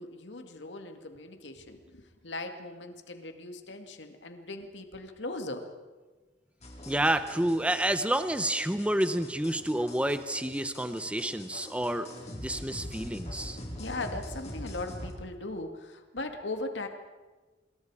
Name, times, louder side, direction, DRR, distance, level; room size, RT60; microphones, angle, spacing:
voice 1, 0.0-5.7 13.8-16.9, left 2 dB, 80° left, 6 dB, 2.2 m, -39 dB
sound 1, 6.6-15.1, left 1 dB, 40° left, 4.5 m, -43 dB
voice 2, 6.9-13.6, right 1 dB, 5° right, 10 dB, 0.8 m, -29 dB
26.0 x 22.5 x 4.9 m, 1.3 s
head